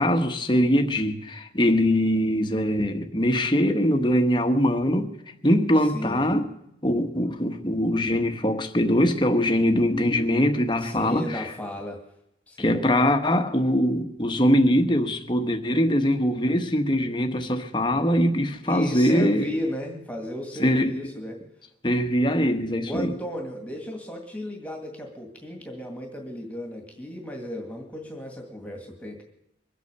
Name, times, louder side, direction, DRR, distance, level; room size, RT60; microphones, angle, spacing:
voice 1, 0.0-5.1 5.4-6.5 6.8-11.4 12.6-19.5 20.6-20.9 21.8-23.1, equal, 25° left, 1.1 m, -22 dB
voice 2, 5.9-6.3 10.8-12.0 12.5-12.8 18.6-21.4 22.9-29.2, left 1 dB, 10° left, 2.1 m, -34 dB
22.5 x 8.4 x 6.8 m
head